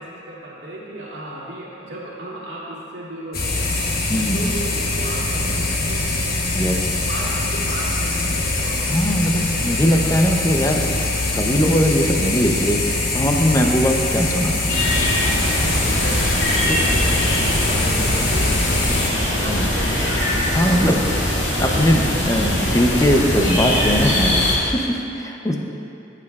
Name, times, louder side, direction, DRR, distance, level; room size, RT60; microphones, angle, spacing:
voice 1, 0.0-3.7 4.3-6.1 6.7-9.2 15.7-20.2 20.6-20.9, right 1 dB, 75° right, -7 dB, 2.1 m, -34 dB
sound 1, 3.3-19.1, left 2 dB, 55° left, 1.1 m, -23 dB
voice 2, 4.1-4.5 6.5-6.9 8.9-10.9 11.3-14.7 16.7-16.8 19.5-19.7 20.5-21.1 21.6-25.6, equal, 20° left, 2 dB, 0.6 m, -20 dB
sound 2, 14.7-24.6, left 1 dB, 75° left, 2.2 m, -21 dB
14.0 x 8.3 x 2.4 m, 2.8 s
head